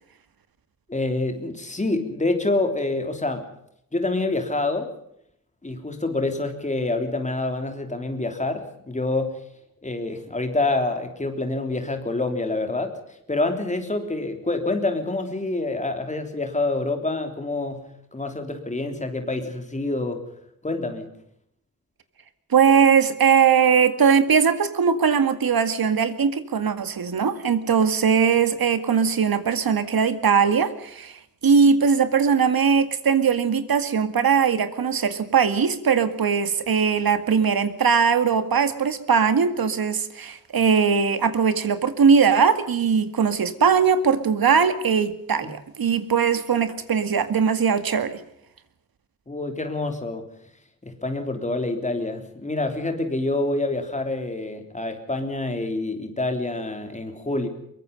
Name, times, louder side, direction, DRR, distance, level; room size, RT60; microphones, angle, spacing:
voice 1, 0.9-3.5 3.9-4.9 5.6-9.4 9.8-12.9 13.3-20.2 20.6-21.1 49.3-50.3 50.8-57.5, left 2 dB, 20° left, 6 dB, 3.4 m, -27 dB
voice 2, 22.5-48.2, right 6 dB, 85° right, 10 dB, 2.2 m, -20 dB
23.5 x 22.5 x 5.4 m, 0.73 s
wide cardioid pair, 165°, 35 cm